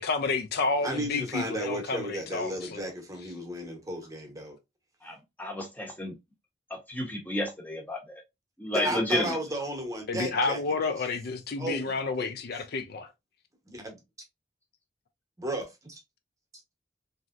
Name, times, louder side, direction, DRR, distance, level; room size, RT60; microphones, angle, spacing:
voice 1, 0.0-2.9 10.1-13.1, left 3 dB, 55° left, 0.4 m, -30 dB
voice 2, 0.8-4.6 8.7-10.6 11.6-12.3 13.7-13.8 15.4-16.0, right 1 dB, 20° right, 0.9 m, -34 dB
voice 3, 5.0-6.1 6.7-8.2 8.6-9.4, left 1 dB, 10° left, 0.8 m, -31 dB
3.1 x 2.7 x 2.4 m
head